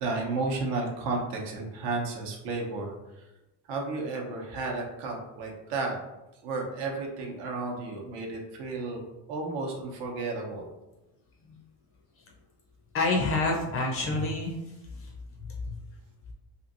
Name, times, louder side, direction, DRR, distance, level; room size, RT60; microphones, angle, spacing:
voice 1, 0.0-2.9 3.7-6.0 6.4-9.0 9.3-10.7, right 3 dB, 70° right, 1 dB, 0.8 m, -32 dB
voice 2, 12.9-14.6 14.9-15.1 15.7-15.8, left 2 dB, 35° left, 0 dB, 0.4 m, -28 dB
2.9 x 2.6 x 2.5 m, 1.0 s
cardioid pair, 155°, 43 cm